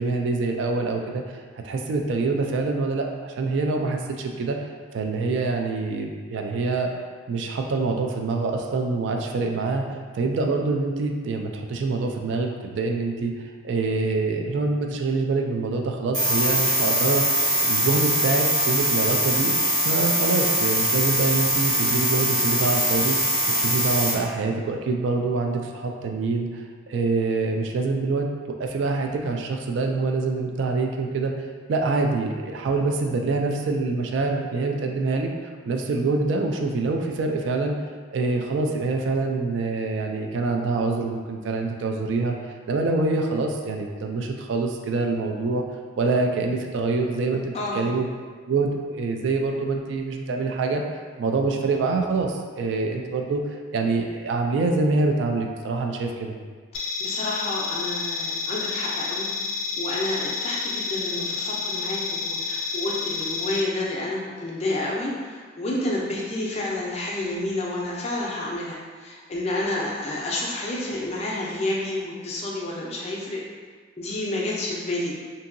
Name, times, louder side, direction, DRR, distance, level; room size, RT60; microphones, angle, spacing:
voice 1, 0.0-6.9 7.3-9.9 10.1-13.3 13.6-17.2 17.6-19.5 19.8-23.2 23.6-28.3 28.6-35.3 35.7-37.7 38.1-42.3 42.7-45.6 46.0-48.1 48.5-50.8 51.2-56.4, right 3 dB, 70° right, 3 dB, 0.3 m, -25 dB
sound 1, 16.1-24.1, right 1 dB, 85° right, 1.1 m, -22 dB
sound 2, 56.7-63.6, left 5 dB, 90° left, 0.4 m, -30 dB
voice 2, 56.7-59.3 59.8-73.4 74.0-75.1, left 1 dB, 30° left, -4 dB, 0.4 m, -29 dB
2.8 x 2.7 x 2.5 m, 1.5 s
head